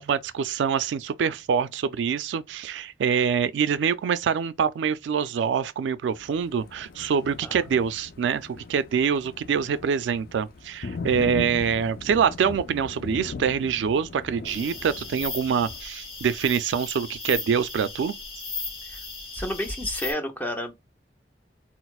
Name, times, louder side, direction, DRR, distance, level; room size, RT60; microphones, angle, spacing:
voice 1, 0.0-18.1, right 7 dB, 90° right, 0.3 m, -25 dB
Thunder, 6.1-15.8, left 3 dB, 55° left, 0.4 m, -40 dB
sound 1, 14.4-20.1, left 3 dB, 35° left, 1.3 m, -36 dB
voice 2, 19.3-20.7, left 1 dB, 10° left, 0.6 m, -30 dB
4.1 x 2.0 x 2.3 m
head